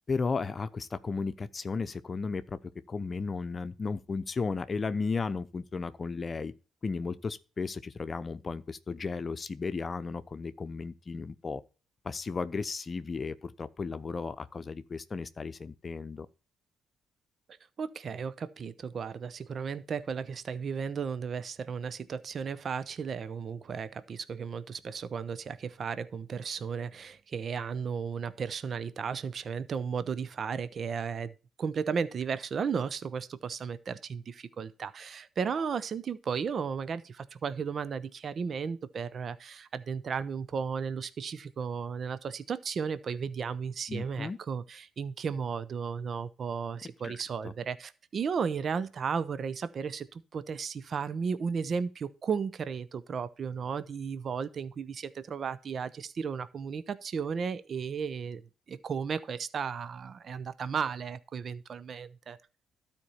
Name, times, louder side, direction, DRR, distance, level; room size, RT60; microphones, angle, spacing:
voice 1, 0.1-2.6 2.9-6.5 6.8-11.6 12.0-16.3 43.9-44.4 47.0-47.1 47.4-47.5, left 4 dB, 40° left, 0.8 m, -34 dB
voice 2, 17.8-31.3 31.6-58.4 58.7-62.4, right 6 dB, 50° right, 0.7 m, -34 dB
12.5 x 4.5 x 5.6 m
hypercardioid pair, 55°, 0 cm